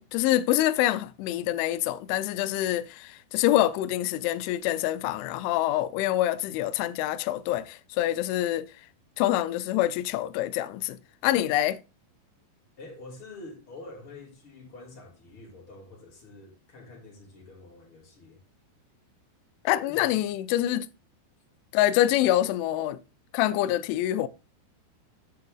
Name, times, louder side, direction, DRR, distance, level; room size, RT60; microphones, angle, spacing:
voice 1, 0.0-8.7 9.2-11.8 19.7-20.9 21.7-23.0 23.3-24.3, left 14 dB, 80° left, 2.9 m, -26 dB
voice 2, 12.8-18.4 19.7-20.2 22.2-22.3, left 2 dB, 35° left, 2.9 m, -46 dB
9.6 x 7.8 x 3.6 m
omnidirectional pair, 5.7 m